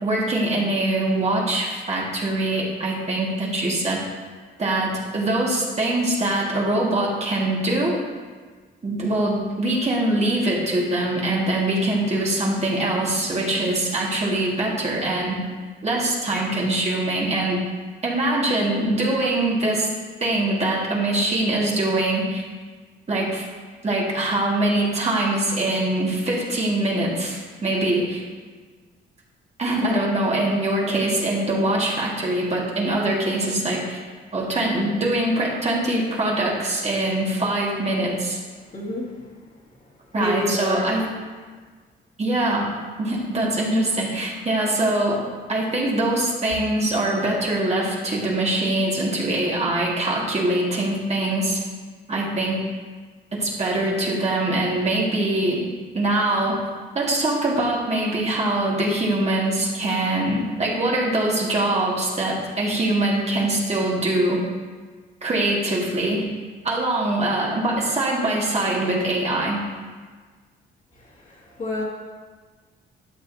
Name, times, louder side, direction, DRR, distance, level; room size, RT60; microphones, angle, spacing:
voice 1, 0.0-4.0 4.6-8.0 8.8-15.4 15.8-17.6 18.0-19.9 20.2-22.4 23.1-23.4 23.8-28.2 29.6-34.0 34.3-38.4 40.1-41.1 42.2-42.7 43.0-51.6 52.1-52.6 53.3-55.7 55.9-56.6 56.9-64.4 65.2-66.3 66.6-69.6, right 1 dB, 35° right, -4 dB, 1.9 m, -23 dB
voice 2, 38.7-39.1 40.2-40.9 71.0-71.8, left 1 dB, 40° left, -5 dB, 2.2 m, -28 dB
12.0 x 6.4 x 2.7 m, 1.5 s
cardioid pair, 90°, 20 cm